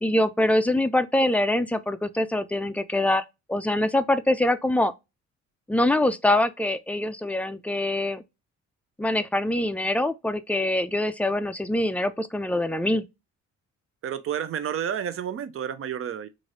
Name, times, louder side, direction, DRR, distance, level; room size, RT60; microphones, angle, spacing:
voice 1, 0.0-4.9 5.7-8.2 9.0-13.0, left 1 dB, 5° left, 0.3 m, -24 dB
voice 2, 14.0-16.3, right 9 dB, 45° right, 0.6 m, -30 dB
3.1 x 2.5 x 2.5 m
cardioid pair, 90°, 30 cm